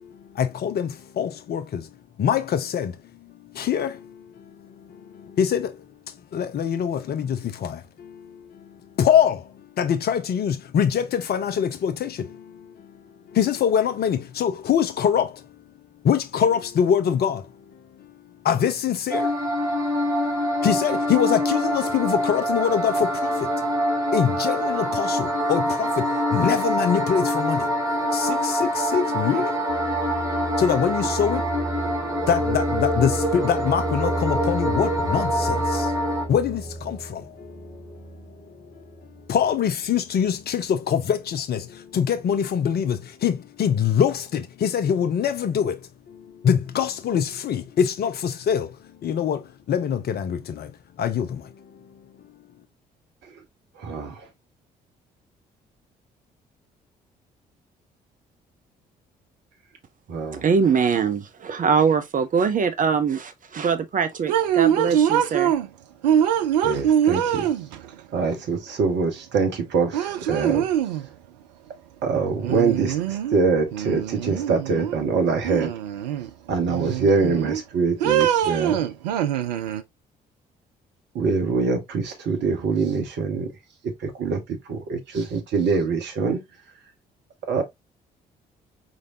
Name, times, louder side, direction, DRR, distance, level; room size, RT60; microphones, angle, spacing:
voice 1, 0.0-15.6 16.0-19.4 20.6-23.8 24.1-27.7 28.1-31.8 32.2-35.9 36.3-38.2 38.5-38.7 39.0-52.4, left 8 dB, 50° left, 0.9 m, -25 dB
sound 1, 19.1-36.3, equal, 15° right, 2.1 m, -25 dB
sound 2, 29.7-39.5, right 1 dB, 5° left, 2.2 m, -33 dB
voice 2, 53.8-54.2 60.1-60.4 66.6-67.5 68.1-70.6 72.0-75.7 76.5-78.8 81.1-83.5 83.8-84.4 84.7-86.4 87.5-87.6, right 4 dB, 55° right, 1.4 m, -24 dB
voice 3, 60.4-65.5, right 6 dB, 40° right, 0.7 m, -22 dB
sound 3, 64.3-65.7 66.0-67.9 69.4-69.5 69.9-71.1 72.4-73.4 73.7-74.9 75.4-76.3 76.7-77.6 78.0-79.8, right 10 dB, 75° right, 0.5 m, -23 dB
5.0 x 3.8 x 2.7 m
figure-of-eight pair, 45°, 21 cm